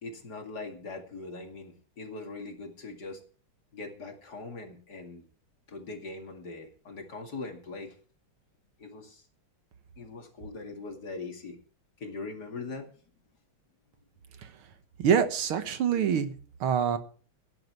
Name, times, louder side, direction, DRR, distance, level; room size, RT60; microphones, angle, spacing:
voice 1, 0.0-3.2 3.7-5.2 5.7-7.9 8.8-9.2 10.0-11.6 12.0-12.9, left 3 dB, 50° left, 3 dB, 2.9 m, -41 dB
voice 2, 15.0-16.3 16.6-17.0, right 7 dB, 85° right, 10 dB, 2.2 m, -25 dB
17.0 x 11.0 x 4.6 m, 0.41 s
omnidirectional pair, 2.3 m